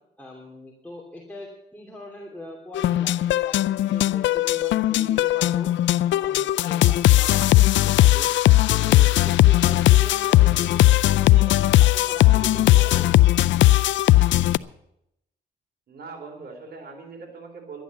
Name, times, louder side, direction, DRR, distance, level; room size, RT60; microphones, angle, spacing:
voice 1, 0.2-5.7 6.1-8.3 8.7-13.1, left 1 dB, 10° left, -2 dB, 2.8 m, -41 dB
sound 1, 2.7-14.6, left 15 dB, 70° left, 0.4 m, -18 dB
voice 2, 15.9-17.8, right 4 dB, 55° right, 3 dB, 3.5 m, -41 dB
12.0 x 10.5 x 7.2 m, 0.80 s
cardioid pair, 90°, 20 cm